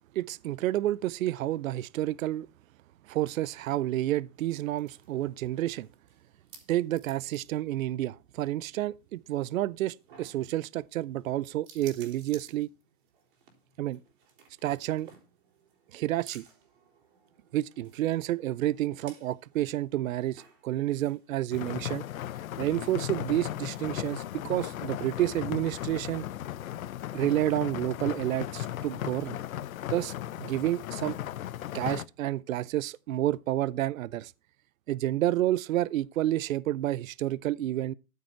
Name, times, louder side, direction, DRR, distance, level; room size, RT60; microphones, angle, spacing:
voice 1, 0.2-2.5 3.1-5.9 6.7-12.7 13.8-14.0 14.6-15.1 15.9-16.4 17.5-22.0 22.6-26.2 27.1-29.4 29.9-30.1 30.4-31.2 31.7-34.3 34.9-37.9, right 14 dB, 70° right, 0.6 m, -30 dB
sound 1, 4.3-21.3, right 6 dB, 35° right, 4.0 m, -57 dB
sound 2, 21.5-32.1, left 12 dB, 75° left, 0.8 m, -36 dB
13.5 x 6.8 x 4.5 m
hypercardioid pair, 175°, 42 cm